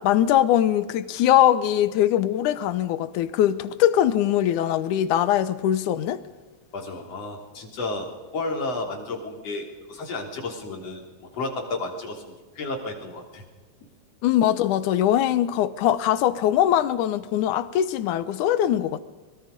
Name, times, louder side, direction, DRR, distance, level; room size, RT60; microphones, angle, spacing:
voice 1, 0.0-6.2 14.2-19.0, left 11 dB, 85° left, 2.4 m, -21 dB
voice 2, 6.7-12.2 12.6-13.4, left 2 dB, 55° left, 4.4 m, -32 dB
24.0 x 22.0 x 5.2 m
omnidirectional pair, 3.4 m